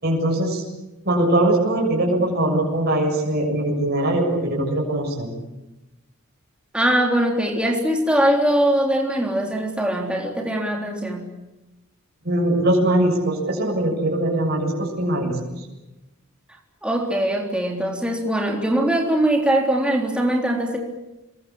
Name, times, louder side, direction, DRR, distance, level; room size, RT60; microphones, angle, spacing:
voice 1, 0.0-0.6 1.0-5.3 12.2-15.7, right 1 dB, 45° right, -2 dB, 7.3 m, -21 dB
voice 2, 6.7-11.3 16.8-20.8, right 1 dB, 5° right, 0 dB, 3.7 m, -21 dB
27.0 x 22.0 x 8.6 m, 1.0 s
head